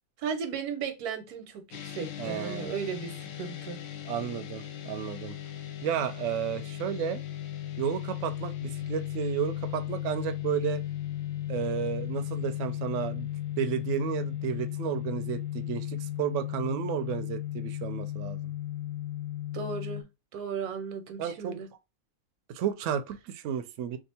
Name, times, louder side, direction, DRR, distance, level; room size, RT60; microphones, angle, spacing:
voice 1, 0.2-3.8 19.5-20.0 20.3-21.7, right 6 dB, 90° right, 1.2 m, -35 dB
sound 1, 1.7-20.0, left 13 dB, 65° left, 0.9 m, -36 dB
voice 2, 2.2-2.8 4.0-5.4 5.8-7.2 7.8-10.8 11.5-13.3 13.6-18.5 21.2-21.6 22.5-24.0, right 9 dB, 70° right, 0.8 m, -32 dB
2.7 x 2.4 x 4.1 m
omnidirectional pair, 1.6 m